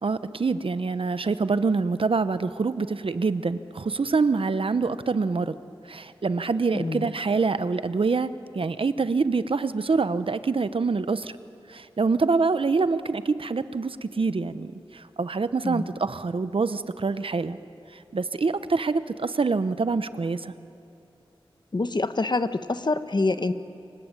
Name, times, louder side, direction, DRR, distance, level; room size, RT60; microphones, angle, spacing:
voice 1, 0.0-5.5 5.9-11.3 11.7-17.6 18.1-20.5, right 4 dB, 70° right, 13 dB, 0.9 m, -25 dB
voice 2, 6.7-7.1 15.6-15.9 21.7-23.5, left 3 dB, 50° left, 11 dB, 1.1 m, -26 dB
27.5 x 24.0 x 9.1 m, 2.9 s
wide cardioid pair, 70°, 10 cm